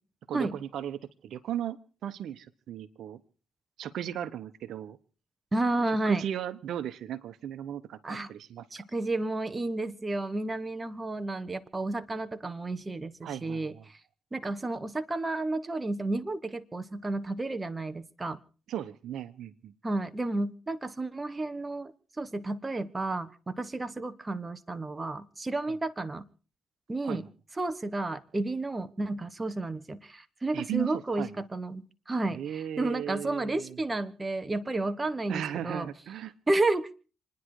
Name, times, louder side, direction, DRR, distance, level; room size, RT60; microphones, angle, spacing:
voice 1, 0.3-3.2 3.8-5.0 6.1-8.8 13.2-13.8 18.7-19.7 27.0-27.2 30.5-31.3 32.3-33.8 35.3-36.3, right 10 dB, 70° right, 12 dB, 1.1 m, -36 dB
voice 2, 5.5-6.2 8.0-8.3 8.7-14.0 14.3-18.4 19.8-26.3 26.9-27.2 27.6-35.9 36.5-36.9, right 2 dB, 20° right, 11 dB, 1.2 m, -32 dB
28.0 x 10.5 x 4.9 m, 0.39 s
cardioid pair, 90°, 0 cm